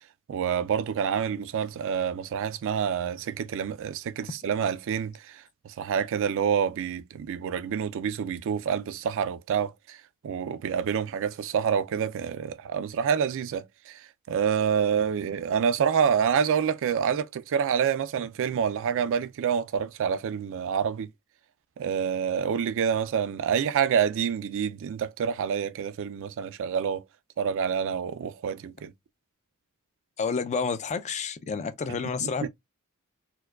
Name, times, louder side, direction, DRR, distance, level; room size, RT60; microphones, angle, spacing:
voice 1, 0.3-10.0 10.2-21.1 21.8-27.0 27.4-28.9 32.2-32.5, right 7 dB, 60° right, 0.3 m, -27 dB
voice 2, 30.2-32.5, left 5 dB, 30° left, 0.3 m, -29 dB
4.5 x 2.2 x 2.2 m
head